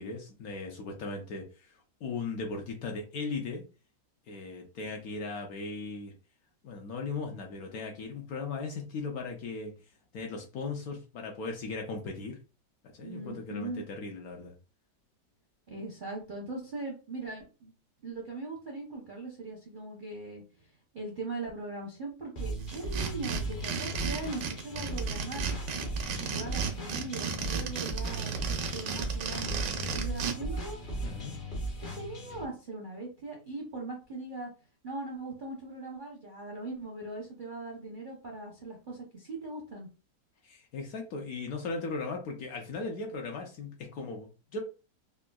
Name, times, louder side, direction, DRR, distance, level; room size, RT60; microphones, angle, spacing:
voice 1, 0.0-1.7 2.0-3.6 4.3-6.1 6.6-9.7 10.1-12.4 12.9-14.5 31.0-31.4 40.4-44.6, left 3 dB, 70° left, 2 dB, 1.0 m, -37 dB
voice 2, 13.0-13.8 15.7-17.7 18.0-20.4 20.9-25.5 26.2-30.8 31.8-34.5 34.8-39.9, right 2 dB, 55° right, -2 dB, 0.5 m, -40 dB
sound 1, 22.4-32.5, right 2 dB, 50° left, 0.6 m, -36 dB
sound 2, 22.7-30.3, right 7 dB, 90° right, 1.3 m, -34 dB
3.6 x 2.3 x 2.2 m, 0.33 s
omnidirectional pair, 1.9 m